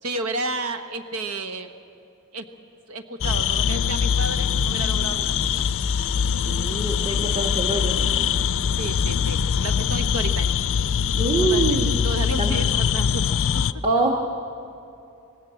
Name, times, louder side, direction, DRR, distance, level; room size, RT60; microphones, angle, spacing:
voice 1, 0.0-1.7 2.3-2.4 2.9-5.6 8.8-10.5 11.5-11.8 12.0-13.6, right 2 dB, 75° right, 8 dB, 1.3 m, -32 dB
sound 1, 3.2-13.7, left 7 dB, 60° left, 0.5 m, -23 dB
voice 2, 6.4-7.9 11.2-12.0 12.4-12.5 13.8-14.2, right 2 dB, 30° right, 1 dB, 1.6 m, -24 dB
25.5 x 18.5 x 7.8 m, 2.6 s
head